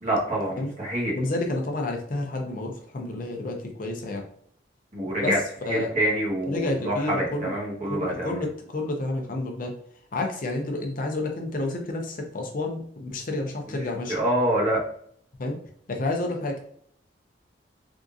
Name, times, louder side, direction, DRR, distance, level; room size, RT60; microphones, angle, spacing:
voice 1, 0.0-1.1 4.9-5.4 5.7-8.3 14.1-14.8, right 1 dB, 40° right, -4 dB, 1.3 m, -26 dB
voice 2, 1.1-4.2 5.2-5.9 6.4-7.5 7.9-9.7 10.1-14.2 15.4-15.6 15.9-16.6, left 2 dB, 50° left, 2 dB, 0.6 m, -30 dB
3.6 x 2.5 x 2.5 m, 0.62 s
head